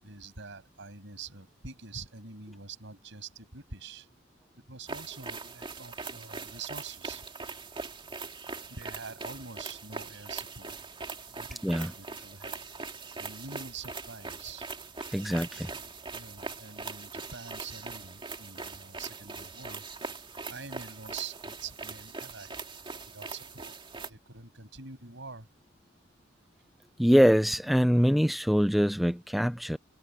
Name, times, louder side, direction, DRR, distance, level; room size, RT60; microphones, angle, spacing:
voice 1, 0.0-4.1 4.7-7.2 8.7-10.8 11.3-12.7 13.2-14.7 15.2-15.5 16.1-19.8 20.5-22.5 23.1-23.7 24.0-25.5, right 4 dB, 65° right, 7.4 m, -45 dB
sound 1, 4.9-24.1, right 4 dB, 25° right, 2.6 m, -41 dB
voice 2, 15.1-15.5 27.0-29.8, equal, ahead, 0.6 m, -23 dB
head